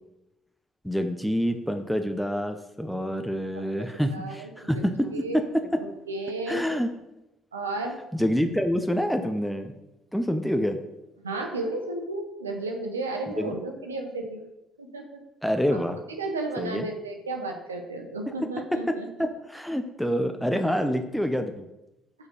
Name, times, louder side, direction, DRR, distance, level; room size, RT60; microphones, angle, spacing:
voice 1, 0.8-5.3 6.5-6.9 8.1-9.7 10.1-10.8 13.4-13.5 15.4-16.0 16.6-16.9 18.6-18.7 19.2-21.7, equal, ahead, 6 dB, 0.8 m, -27 dB
voice 2, 3.5-4.5 4.7-5.4 5.8-6.6 7.5-8.0 11.2-14.4 14.8-15.2 15.7-15.8 16.2-19.1, right 2 dB, 90° right, 3 dB, 0.9 m, -33 dB
6.9 x 4.9 x 5.3 m, 0.93 s
hypercardioid pair, 50°, 0 cm